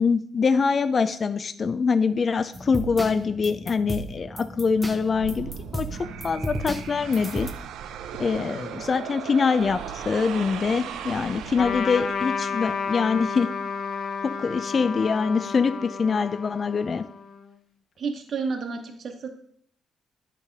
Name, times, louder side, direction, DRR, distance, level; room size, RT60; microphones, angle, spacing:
voice 1, 0.0-5.9 6.2-7.5 8.2-13.5 14.4-17.0, left 5 dB, 40° left, 10 dB, 0.4 m, -24 dB
sound 1, 2.5-7.5, equal, 5° right, 0.8 m, -35 dB
sound 2, 5.1-12.3, right 8 dB, 80° right, 0.5 m, -37 dB
Trumpet, 11.6-17.4, left 5 dB, 60° left, 0.7 m, -31 dB
voice 2, 18.0-19.3, right 5 dB, 55° right, 5 dB, 1.0 m, -31 dB
9.6 x 3.3 x 5.2 m, 0.63 s
cardioid pair, 90°, 0 cm